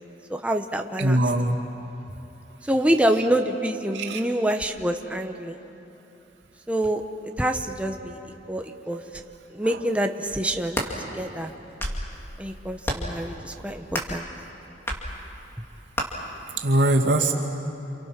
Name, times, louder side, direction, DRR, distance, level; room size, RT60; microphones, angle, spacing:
voice 1, 0.3-1.2 2.6-5.6 6.7-8.2 8.5-9.2 9.5-10.8 11.1-11.5 12.4-14.3, right 1 dB, 5° right, 4 dB, 0.9 m, -26 dB
voice 2, 1.0-1.6 3.9-4.2 9.6-9.8 11.1-11.2 16.6-17.3, right 1 dB, 90° right, 1 dB, 2.4 m, -22 dB
sound 1, 10.6-10.9 11.6-12.1 12.8-13.2 13.9-14.2 14.9-15.0 15.9-16.1, equal, 15° left, 2.5 m, -29 dB
28.5 x 28.5 x 6.0 m, 3.0 s
head